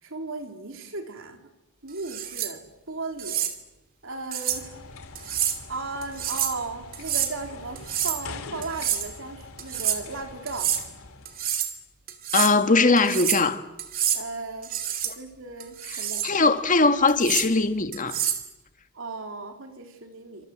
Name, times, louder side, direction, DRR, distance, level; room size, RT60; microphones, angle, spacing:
voice 1, 0.0-1.4 1.8-3.5 4.0-4.8 5.7-10.8 14.1-14.8 15.1-16.3 18.9-20.5, right 3 dB, 65° right, 3.6 m, -36 dB
sound 1, 2.0-2.5 3.2-3.5 4.3-4.6 5.2-5.6 6.0-6.6 6.9-7.3 7.8-8.2 8.6-9.1 9.6-10.0 10.5-10.8 11.3-11.7 12.1-12.5 13.0-13.5 13.8-14.2 14.6-15.1 15.6-16.3 17.1-17.5 17.9-18.5, right 10 dB, 45° right, 2.8 m, -28 dB
sound 2, 4.5-11.5, left 3 dB, 80° left, 2.8 m, -43 dB
voice 2, 12.3-13.6 15.1-15.2 15.9-18.2, left 3 dB, 40° left, 2.0 m, -21 dB
28.0 x 26.0 x 7.7 m
head